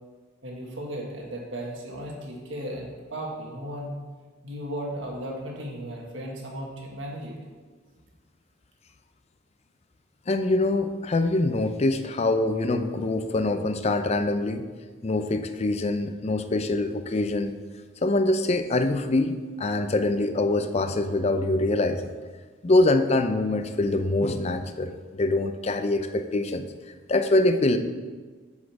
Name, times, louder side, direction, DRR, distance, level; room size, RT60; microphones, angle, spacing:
voice 1, 0.4-4.0 4.4-7.4, equal, 70° right, -1 dB, 1.5 m, -35 dB
voice 2, 10.3-14.7 15.0-17.5 18.0-22.1 22.6-26.6 27.1-27.8, left 2 dB, 35° left, 8 dB, 0.5 m, -24 dB
7.3 x 6.3 x 4.7 m, 1.4 s
head